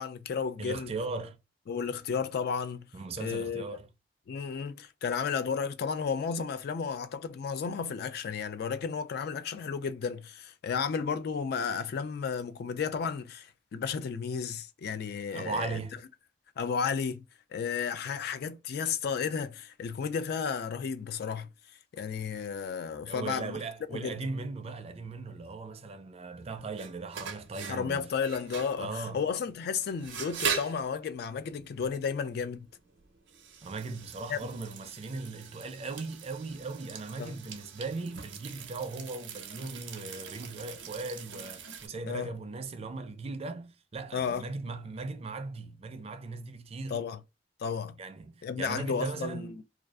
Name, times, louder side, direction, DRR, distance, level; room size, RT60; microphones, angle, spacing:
voice 1, 0.0-0.9 1.7-2.9 3.2-3.6 4.3-15.8 16.6-17.2 17.5-21.5 21.9-23.6 23.9-24.2 27.7-32.7 34.3-34.4 37.2-37.3 42.1-42.3 44.1-44.4 46.9-47.2 47.6-48.0 48.4-49.6, left 6 dB, 60° left, 0.3 m, -33 dB
voice 2, 0.6-1.4 2.9-3.9 15.3-16.0 23.1-28.1 28.8-29.2 33.6-47.0 48.0-49.6, right 3 dB, 35° right, 0.4 m, -38 dB
sound 1, 26.4-41.9, right 7 dB, 85° right, 0.6 m, -41 dB
2.5 x 2.3 x 2.3 m
head